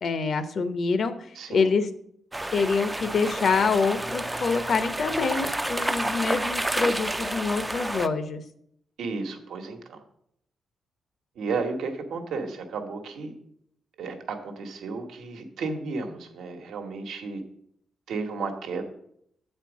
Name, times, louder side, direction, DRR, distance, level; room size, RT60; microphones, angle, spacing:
voice 1, 0.0-1.1 1.5-1.9 2.5-8.4, left 4 dB, 55° left, 11 dB, 0.7 m, -25 dB
voice 2, 1.3-1.7 9.0-10.0 11.3-13.3 14.0-17.4 18.1-18.8, right 4 dB, 85° right, 4 dB, 1.1 m, -33 dB
sound 1, 2.3-8.1, right 1 dB, 10° right, 0.3 m, -30 dB
7.8 x 4.4 x 7.1 m, 0.71 s
cardioid pair, 125°, 0 cm